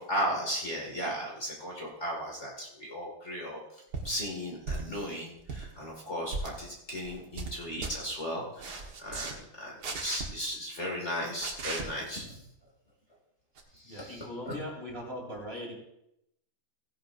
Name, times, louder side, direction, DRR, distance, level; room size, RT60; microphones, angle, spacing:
voice 1, 0.0-3.6 4.0-8.7 9.0-12.4 13.9-14.5, equal, 35° left, -3 dB, 2.2 m, -36 dB
sound 1, 3.9-4.1 4.7-5.0 5.4-5.7 6.3-6.5 7.0-7.5 7.8-7.9 8.6-9.3 9.8-10.2 11.4-11.8 13.6-13.7, right 4 dB, 55° right, 1.8 m, -36 dB
voice 2, 13.8-15.7, left 1 dB, 30° right, -2 dB, 2.7 m, -40 dB
16.5 x 10.5 x 2.5 m, 0.81 s
omnidirectional pair, 2.2 m